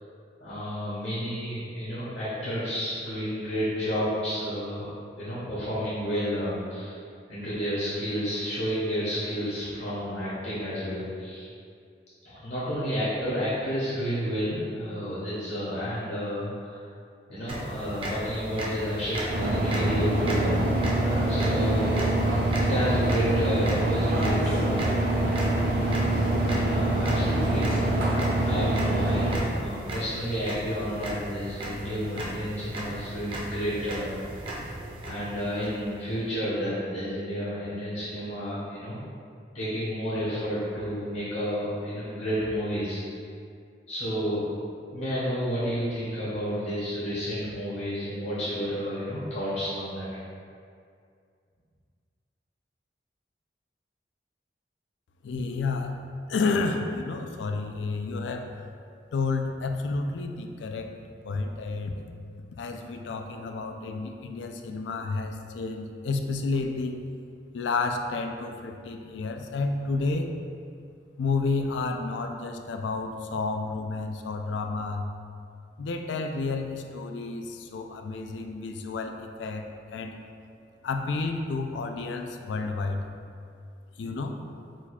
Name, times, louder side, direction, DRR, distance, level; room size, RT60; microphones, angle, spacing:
voice 1, 0.4-7.0 7.3-11.5 12.2-16.8 17.3-20.7 21.3-22.0 22.6-24.7 25.7-26.2 26.4-28.1 28.4-34.2 35.0-39.0 39.5-43.0 43.9-44.4 44.9-50.1, equal, 70° left, -11 dB, 1.0 m, -31 dB
sound 1, 17.5-36.2, right 1 dB, 30° right, 0.6 m, -37 dB
sound 2, 19.3-29.4, right 1 dB, 60° right, 0.8 m, -25 dB
voice 2, 55.2-56.0 56.3-58.5 59.1-60.9 61.2-62.1 62.5-67.0 67.5-70.3 71.2-75.1 75.8-80.1 80.8-83.0 84.0-84.4, left 3 dB, 90° left, 5 dB, 0.4 m, -30 dB
4.4 x 2.3 x 4.2 m, 2.3 s
head